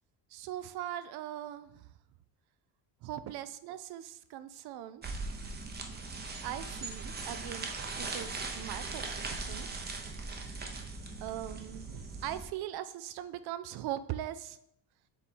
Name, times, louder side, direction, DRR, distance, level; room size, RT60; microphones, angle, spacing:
voice 1, 0.3-1.9 3.0-5.0 6.4-9.7 11.2-14.6, right 12 dB, 65° right, 13 dB, 0.5 m, -40 dB
sound 1, 5.0-12.5, right 3 dB, 25° right, 0.8 m, -39 dB
7.0 x 3.5 x 4.2 m, 0.75 s
cardioid pair, 145°, 41 cm